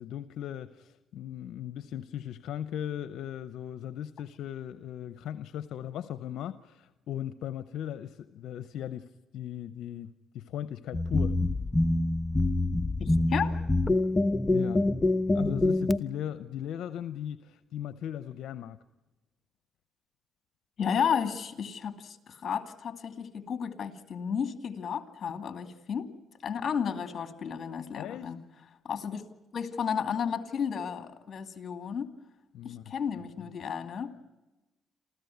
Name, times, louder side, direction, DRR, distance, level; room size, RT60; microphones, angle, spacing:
voice 1, 0.0-11.4 13.9-14.0 14.5-14.8 15.3-18.8 28.0-28.3 32.5-32.8, left 10 dB, 80° left, 13 dB, 0.7 m, -38 dB
sound 1, 10.9-16.0, left 2 dB, 20° left, 0.9 m, -26 dB
voice 2, 13.0-13.6 20.8-26.1 26.4-28.4 28.8-29.2 29.5-32.1 32.6-34.1, left 7 dB, 50° left, 9 dB, 2.5 m, -33 dB
28.5 x 14.5 x 9.3 m, 1.1 s
cardioid pair, 90°, 0 cm